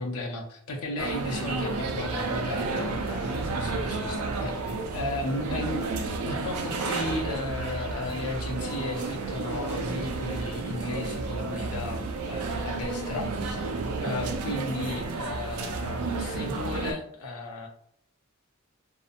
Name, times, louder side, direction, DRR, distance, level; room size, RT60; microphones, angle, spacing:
voice 1, 0.0-5.9 6.2-13.6 14.0-17.7, left 2 dB, 85° left, 1 dB, 0.6 m, -35 dB
sound 1, 1.0-16.9, right 3 dB, 80° right, 0.4 m, -31 dB
2.7 x 2.0 x 2.4 m, 0.67 s
head